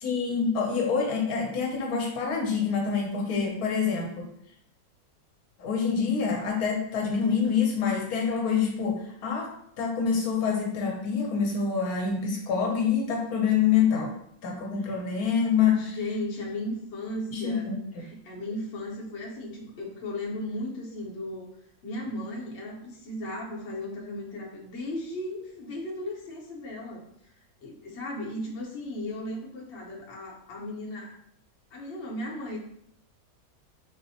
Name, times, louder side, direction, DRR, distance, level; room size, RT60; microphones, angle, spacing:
voice 1, 0.0-4.3 5.6-9.5 9.8-14.1 14.4-15.8 17.3-17.7, left 6 dB, 80° left, 0 dB, 1.2 m, -26 dB
voice 2, 15.7-21.6 21.8-27.3 27.6-31.1 31.7-32.6, left 1 dB, 55° left, -2 dB, 1.0 m, -36 dB
4.1 x 2.1 x 2.7 m, 0.70 s
omnidirectional pair, 1.5 m